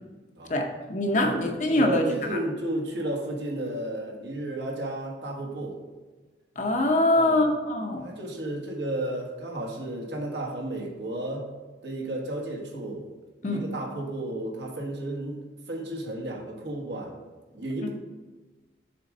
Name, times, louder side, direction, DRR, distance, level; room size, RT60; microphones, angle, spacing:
voice 1, 0.5-2.4 6.6-8.1 13.4-13.6, left 1 dB, 40° left, 3 dB, 0.7 m, -24 dB
voice 2, 1.2-5.8 7.1-7.5 8.0-11.5 11.8-13.1 13.4-15.4 15.7-17.1 17.5-17.9, right 1 dB, 70° right, -1 dB, 1.5 m, -33 dB
6.9 x 3.7 x 5.3 m, 1.3 s
head